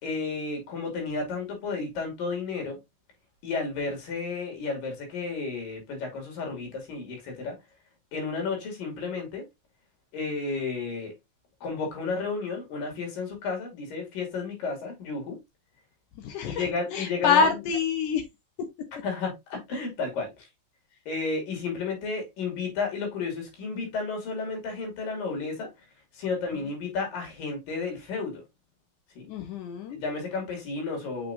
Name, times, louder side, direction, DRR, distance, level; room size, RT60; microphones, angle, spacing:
voice 1, 0.0-2.8 3.4-7.6 8.1-9.4 10.1-11.1 11.6-15.4 16.4-17.6 19.0-20.5 21.1-25.7 26.1-28.4 29.2-29.3 29.9-31.3, left 4 dB, 55° left, 4.2 m, -32 dB
voice 2, 16.2-16.6 16.9-18.2 26.5-26.6 29.3-30.0, left 5 dB, 90° left, 1.8 m, -26 dB
6.6 x 6.1 x 2.7 m
omnidirectional pair, 5.0 m